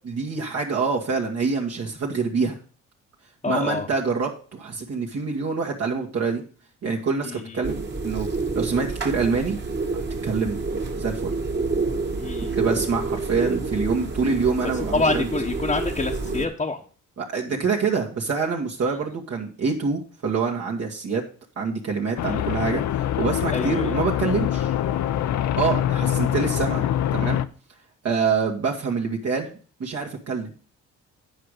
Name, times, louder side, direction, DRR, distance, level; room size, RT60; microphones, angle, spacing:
voice 1, 0.1-2.5 3.4-6.4 6.8-8.3 8.5-9.6 9.9-10.6 10.9-11.3 12.6-15.3 17.2-21.2 21.6-22.8 23.2-24.7 25.6-26.8 27.1-27.4 28.0-29.5 29.8-30.5, right 5 dB, 55° right, -1 dB, 1.7 m, -26 dB
voice 2, 3.4-3.9 7.2-7.6 12.2-12.6 14.7-16.8 22.2-22.4 23.5-23.9, left 3 dB, 20° left, -1 dB, 1.0 m, -27 dB
sound 1, 7.6-16.5, right 3 dB, 35° right, 1.8 m, -28 dB
sound 2, 22.2-27.5, left 11 dB, 70° left, 0.6 m, -24 dB
9.2 x 5.0 x 6.5 m, 0.41 s
cardioid pair, 90°, 30 cm